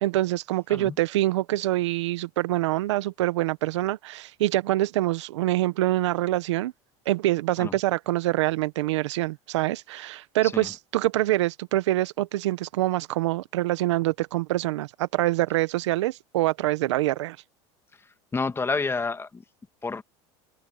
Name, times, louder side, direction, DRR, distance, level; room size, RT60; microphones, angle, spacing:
voice 1, 0.0-6.7 7.1-17.4, right 16 dB, 85° right, 1.3 m, -25 dB
voice 2, 18.3-19.4 19.8-20.0, left 4 dB, 15° left, 1.9 m, -29 dB
supercardioid pair, 105°, 15 cm